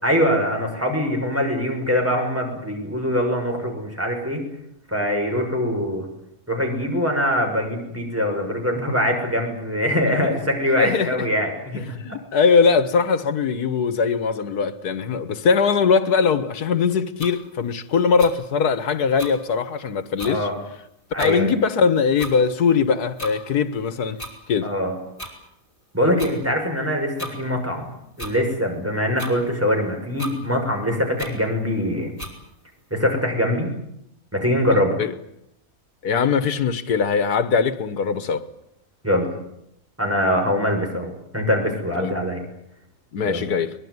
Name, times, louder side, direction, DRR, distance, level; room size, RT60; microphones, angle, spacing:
voice 1, 0.0-4.4 4.9-6.1 6.5-12.0 20.2-20.5 21.1-21.5 24.6-25.0 25.9-27.9 28.2-32.1 32.9-33.7 34.3-35.0 39.0-39.3 40.0-42.4 43.2-43.4, equal, 10° right, 6.2 m, -23 dB
voice 2, 10.8-11.2 12.0-20.5 21.2-24.2 24.5-24.7 35.0-35.1 36.0-38.5 42.0-42.1 43.1-43.7, left 5 dB, 90° left, 1.8 m, -21 dB
sound 1, 17.2-17.3 18.2-18.3 19.2-19.3 19.8-19.9 20.2-20.3 21.2-21.3 22.2-22.3 23.2-23.3 24.2-24.3 25.2-25.3 26.2-26.3 27.2-27.3 28.2-28.4 29.2-29.3 30.2-30.3 31.2-31.3 32.2-32.3, equal, 35° left, 5.4 m, -34 dB
23.0 x 21.5 x 9.6 m
omnidirectional pair, 1.6 m